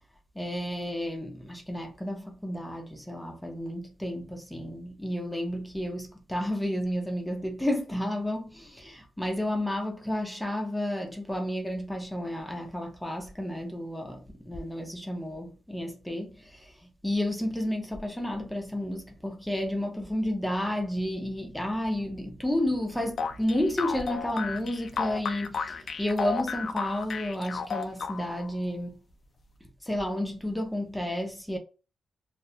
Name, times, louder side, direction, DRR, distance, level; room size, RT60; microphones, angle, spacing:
voice 1, 0.4-29.0 29.8-31.6, left 1 dB, 5° left, 0.6 m, -31 dB
sound 1, 23.2-28.5, left 5 dB, 55° left, 0.3 m, -33 dB
2.4 x 2.3 x 2.7 m
cardioid pair, 115°, 0 cm